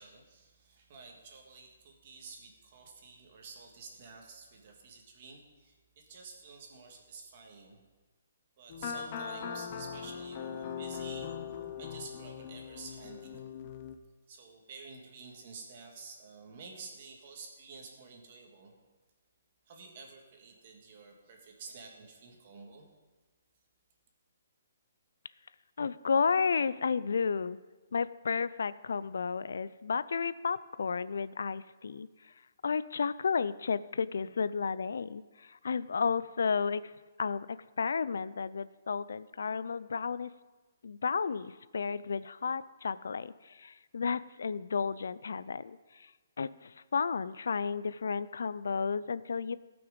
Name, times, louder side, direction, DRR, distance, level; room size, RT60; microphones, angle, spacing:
voice 1, 0.0-7.8 8.6-13.4 14.3-18.7 19.7-22.9, right 4 dB, 35° right, 1 dB, 1.7 m, -50 dB
sound 1, 8.7-13.9, left 7 dB, 30° left, 0.6 m, -40 dB
voice 2, 25.8-27.6 27.9-32.1 32.6-36.9 37.2-40.3 40.8-46.1 46.4-49.6, left 5 dB, 70° left, 17 dB, 0.4 m, -32 dB
17.0 x 6.0 x 5.1 m, 1.3 s
hypercardioid pair, 175°, 0 cm